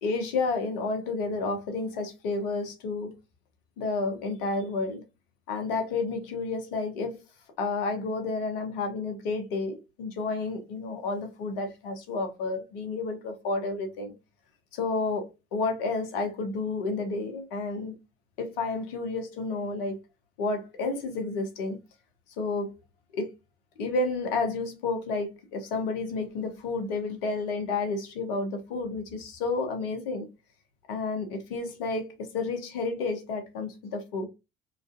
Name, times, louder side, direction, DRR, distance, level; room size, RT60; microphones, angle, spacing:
voice 1, 0.0-3.1 3.8-5.0 5.5-7.2 7.6-14.1 14.7-15.2 15.5-17.9 18.4-20.0 20.4-21.8 22.4-22.8 23.1-23.3 23.8-30.3 30.9-34.3, left 3 dB, 65° left, 0.9 m, -31 dB
3.1 x 2.5 x 2.5 m
figure-of-eight pair, 60°, 30 cm